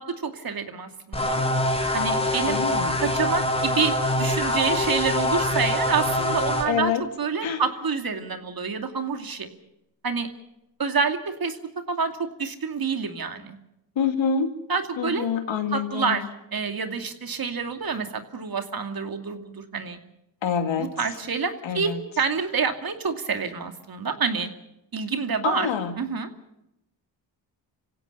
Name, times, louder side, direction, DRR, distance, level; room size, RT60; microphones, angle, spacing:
voice 1, 0.0-1.4 1.9-2.6 3.0-9.5 10.0-10.3 10.8-11.6 11.9-13.6 14.7-15.3 15.7-16.3 16.5-20.0 20.8-24.5 24.9-25.7 26.0-26.3, right 5 dB, 50° right, 7 dB, 2.6 m, -28 dB
sound 1, 1.1-6.6, left 1 dB, 15° left, 3.5 m, -24 dB
voice 2, 2.5-3.0 6.7-7.0 7.4-7.6 14.0-14.5 15.0-16.2 20.4-20.9 21.6-22.0 25.4-25.9, left 7 dB, 80° left, 7 dB, 2.6 m, -26 dB
26.5 x 16.5 x 6.7 m, 0.88 s
cardioid pair, 80°, 46 cm